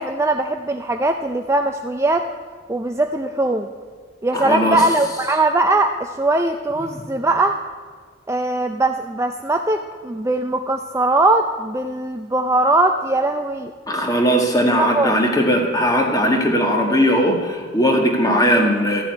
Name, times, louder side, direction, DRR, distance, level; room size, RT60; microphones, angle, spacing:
voice 1, 0.0-2.3 2.7-3.7 4.2-7.6 8.3-13.7 14.8-15.1, right 2 dB, 15° right, 5 dB, 0.5 m, -20 dB
voice 2, 4.3-4.9 6.8-7.0 13.9-19.0, equal, 20° left, 2 dB, 1.8 m, -18 dB
13.5 x 7.3 x 9.4 m, 1.5 s
head